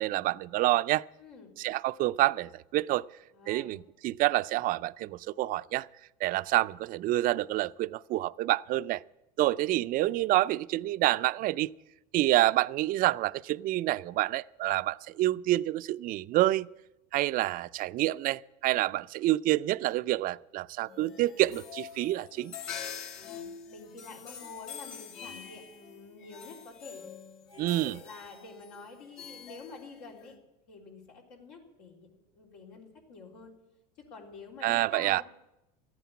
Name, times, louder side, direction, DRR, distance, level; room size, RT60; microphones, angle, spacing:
voice 1, 0.0-1.1 1.6-3.0 3.5-5.9 6.2-9.0 9.4-11.7 12.1-16.7 17.1-22.5 27.6-28.0 34.6-35.2, right 16 dB, 45° right, 0.4 m, -28 dB
voice 2, 1.2-1.5 3.3-3.8 9.5-9.7 23.1-27.1 27.8-30.4 30.7-33.5 34.1-35.2, left 3 dB, 85° left, 3.6 m, -48 dB
sound 1, 20.8-30.3, left 8 dB, 65° left, 1.9 m, -45 dB
14.0 x 9.2 x 8.4 m
supercardioid pair, 110°, 21 cm